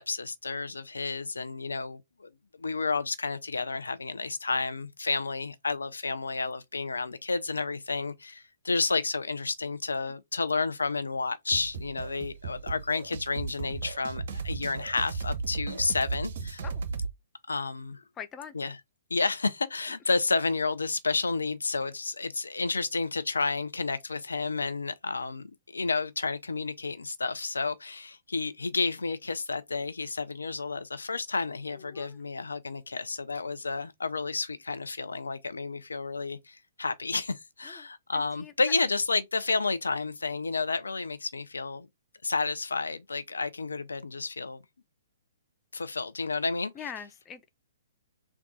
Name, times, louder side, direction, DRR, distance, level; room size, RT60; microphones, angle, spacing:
voice 1, 0.0-2.3 2.6-16.6 17.5-18.0 18.5-18.8 19.1-41.9 42.2-44.6 45.7-46.7, left 4 dB, 75° left, 0.5 m, -31 dB
sound 1, 11.5-17.1, right 4 dB, 55° right, 0.6 m, -35 dB
voice 2, 18.2-18.5 31.7-32.2 37.6-38.5 46.8-47.5, left 8 dB, 20° left, 0.4 m, -43 dB
3.6 x 2.3 x 4.0 m
figure-of-eight pair, 120°, 0 cm